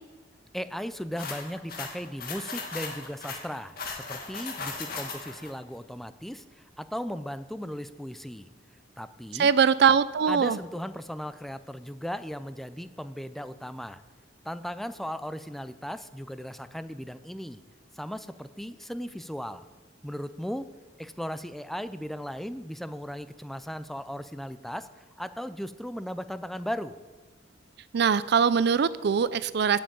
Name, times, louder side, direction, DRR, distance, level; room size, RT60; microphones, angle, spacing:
voice 1, 0.5-8.5 9.0-9.5 10.3-14.0 14.4-17.6 17.9-19.7 20.0-20.7 21.0-27.0, equal, ahead, 12 dB, 0.4 m, -37 dB
sound 1, 1.2-5.5, left 4 dB, 55° left, 2.0 m, -37 dB
voice 2, 9.4-10.6 27.9-29.8, right 6 dB, 65° right, 17 dB, 0.4 m, -22 dB
8.9 x 7.7 x 8.5 m, 1.3 s
head